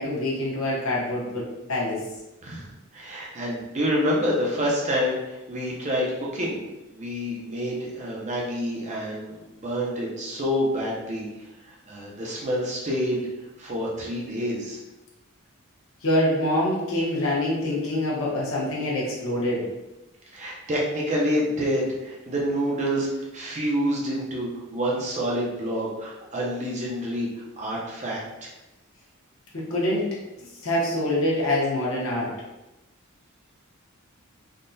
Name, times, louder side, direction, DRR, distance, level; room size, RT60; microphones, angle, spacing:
voice 1, 0.0-2.0 16.0-19.6 29.5-30.1 30.6-32.3, left 1 dB, 65° left, -5 dB, 1.0 m, -25 dB
voice 2, 2.4-6.1 6.3-6.6 6.9-11.3 11.6-13.3 13.6-14.8 20.3-27.3 27.6-28.5, equal, 30° right, -4 dB, 0.6 m, -28 dB
3.6 x 2.3 x 2.6 m, 0.98 s
head